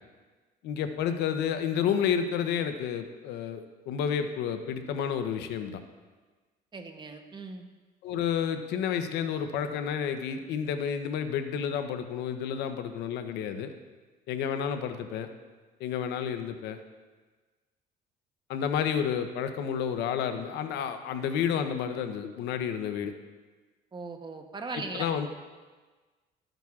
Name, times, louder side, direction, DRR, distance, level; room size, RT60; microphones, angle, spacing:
voice 1, 0.6-5.8 8.0-13.7 14.3-15.3 15.8-16.8 18.5-23.1 24.7-25.3, left 8 dB, 85° left, 8 dB, 0.7 m, -30 dB
voice 2, 6.7-7.6 23.9-25.1, right 3 dB, 25° right, 5 dB, 0.9 m, -39 dB
13.0 x 8.9 x 2.4 m, 1.3 s
cardioid pair, 110°, 17 cm